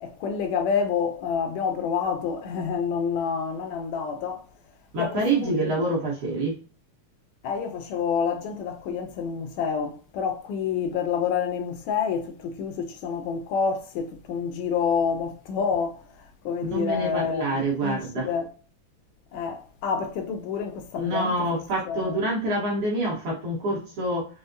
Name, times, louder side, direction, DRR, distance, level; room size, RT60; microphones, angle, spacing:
voice 1, 0.0-4.4 5.0-5.8 7.4-18.5 19.3-21.6 21.9-22.2, left 6 dB, 80° left, 1.8 m, -28 dB
voice 2, 4.9-6.5 16.6-18.3 21.0-24.3, right 2 dB, 60° right, 1.6 m, -26 dB
5.0 x 2.0 x 2.5 m
omnidirectional pair, 3.4 m